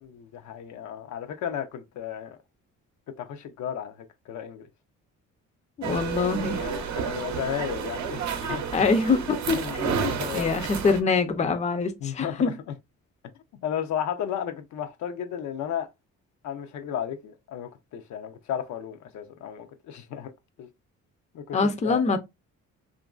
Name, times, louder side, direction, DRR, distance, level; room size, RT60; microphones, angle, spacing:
voice 1, 0.0-2.4 3.2-4.7 5.9-6.1 6.5-8.8 9.5-10.5 12.0-12.5 13.6-15.9 16.4-20.3 20.6-20.7 21.3-22.2, left 9 dB, 70° left, 0.5 m, -34 dB
voice 2, 5.8-6.7 8.5-12.5 21.5-22.2, left 4 dB, 25° left, 0.4 m, -25 dB
sound 1, 5.8-11.0, right 7 dB, 65° right, 0.6 m, -31 dB
2.9 x 2.5 x 2.3 m
cardioid pair, 90°, 30 cm